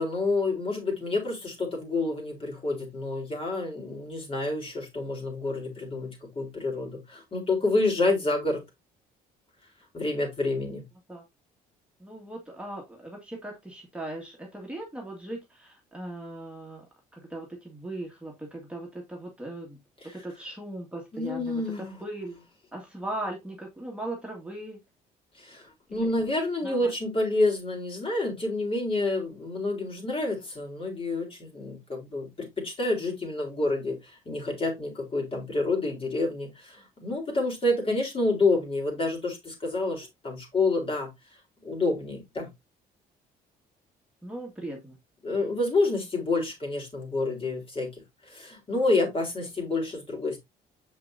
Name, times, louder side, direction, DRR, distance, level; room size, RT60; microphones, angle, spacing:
voice 1, 0.0-8.6 9.9-10.9 20.0-20.2 21.1-22.0 25.4-41.1 41.6-42.5 45.2-47.9 48.3-50.4, left 2 dB, 35° left, 3.8 m, -28 dB
voice 2, 12.0-16.8 17.1-19.8 20.1-22.4 22.7-24.8 25.9-26.1 26.6-26.9 44.2-45.0, right 1 dB, 5° right, 1.9 m, -38 dB
6.9 x 5.9 x 2.7 m
cardioid pair, 95°, 17 cm